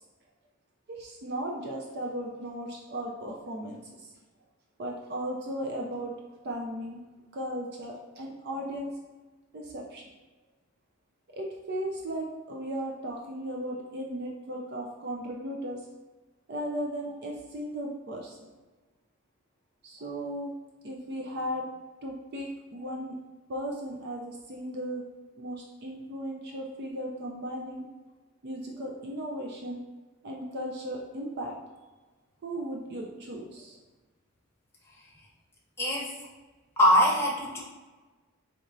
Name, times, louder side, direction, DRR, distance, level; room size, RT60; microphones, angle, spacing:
voice 1, 0.9-4.1 4.8-6.1 6.4-7.0 7.3-8.9 9.5-10.0 11.3-15.9 16.5-18.4 19.8-20.5 20.8-21.7 22.0-23.2 23.5-25.0 25.4-27.8 28.4-29.8 30.2-31.6 32.4-33.8, right 1 dB, 50° right, 0 dB, 0.4 m, -36 dB
voice 2, 35.8-36.1 36.8-37.6, equal, 10° left, -4 dB, 0.8 m, -22 dB
4.3 x 3.0 x 2.6 m, 1.3 s
head